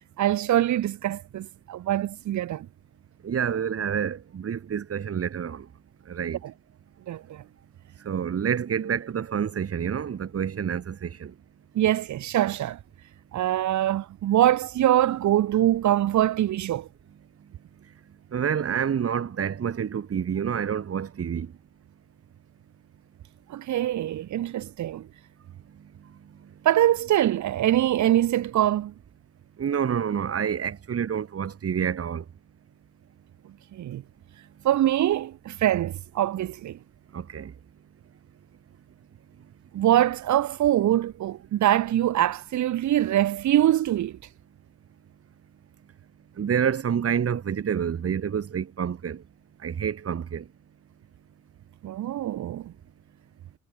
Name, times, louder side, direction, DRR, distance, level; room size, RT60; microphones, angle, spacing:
voice 1, 0.2-2.7 7.1-7.4 11.7-12.8 13.3-16.9 23.5-25.1 26.6-28.9 33.7-34.0 34.6-36.8 39.7-44.2 51.8-52.7, right 12 dB, 70° right, 1.6 m, -23 dB
voice 2, 3.2-5.7 6.1-6.4 8.0-11.3 18.3-21.5 29.6-32.2 37.1-37.5 46.4-49.2 49.6-50.4, right 8 dB, 50° right, 3.9 m, -28 dB
cardioid pair, 90°, 30 cm